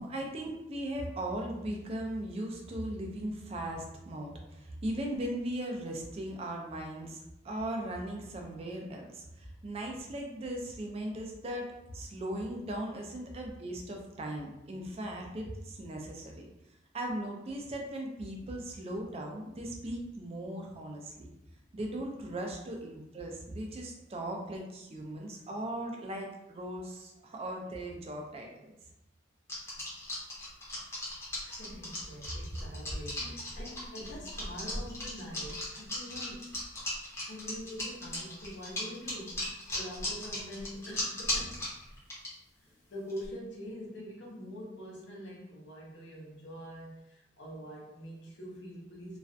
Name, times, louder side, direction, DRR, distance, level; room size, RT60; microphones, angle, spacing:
voice 1, 0.0-11.7 11.9-16.5 16.9-21.3 21.7-28.7 33.2-33.3, right 1 dB, 35° right, 1 dB, 0.4 m, -38 dB
sound 1, 29.5-42.3 43.1-43.3, left 1 dB, 15° left, 0.7 m, -36 dB
voice 2, 31.4-36.6 37.2-41.7 42.6-49.2, equal, 80° left, -3 dB, 0.7 m, -44 dB
2.4 x 2.1 x 2.5 m, 0.88 s
head